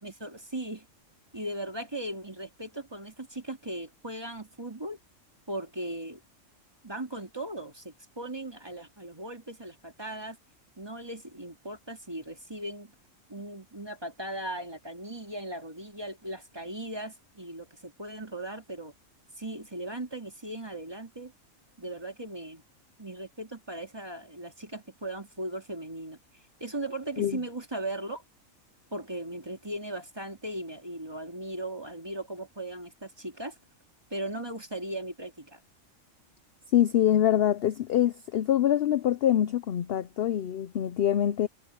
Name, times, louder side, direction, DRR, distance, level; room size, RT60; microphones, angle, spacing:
voice 1, 0.0-0.9 1.3-5.0 5.5-6.2 6.8-10.4 10.8-12.9 13.3-18.9 19.4-21.3 21.8-22.6 23.0-26.2 26.6-28.2 28.9-33.6 34.1-35.6, right 1 dB, 20° right, 2.6 m, -38 dB
voice 2, 36.7-41.5, left 11 dB, 60° left, 0.7 m, -24 dB
omnidirectional pair, 1.4 m